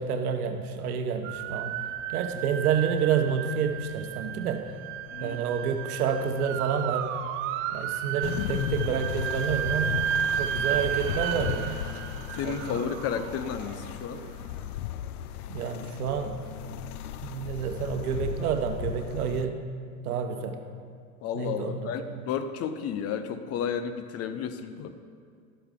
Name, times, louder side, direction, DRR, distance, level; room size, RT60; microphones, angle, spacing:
voice 1, 0.0-1.7 2.1-4.7 5.2-7.2 7.7-11.8 12.4-12.8 15.5-16.5 17.2-19.6 20.0-20.6 21.3-21.9, right 7 dB, 75° right, 6 dB, 1.0 m, -29 dB
Emergency Ambulance Pass, 1.2-14.3, right 9 dB, 30° right, 0.4 m, -33 dB
sound 1, 8.2-19.5, left 11 dB, 75° left, 0.6 m, -36 dB
voice 2, 12.3-14.2 21.2-25.0, left 7 dB, 35° left, 10 dB, 0.7 m, -32 dB
12.0 x 7.9 x 3.7 m, 2.2 s
hypercardioid pair, 100°, 45 cm